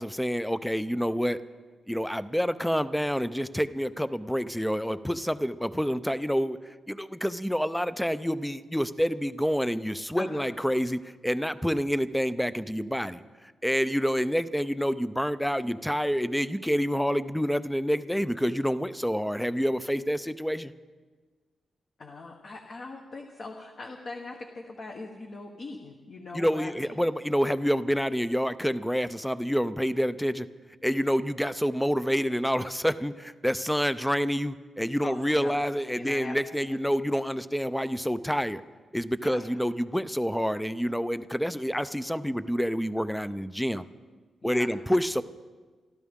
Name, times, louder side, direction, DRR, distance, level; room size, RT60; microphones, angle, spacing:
voice 1, 0.0-1.4 1.9-6.6 6.9-13.2 13.6-20.7 26.3-30.5 30.8-38.6 38.9-43.9 44.4-45.2, equal, ahead, 13 dB, 0.5 m, -28 dB
voice 2, 10.2-10.5 22.0-26.9 35.0-35.5 35.9-36.3 36.7-36.8 39.2-39.4 44.4-44.7, left 3 dB, 45° left, 1 dB, 1.2 m, -41 dB
26.5 x 12.5 x 3.7 m, 1.4 s
wide cardioid pair, 145°, 0 cm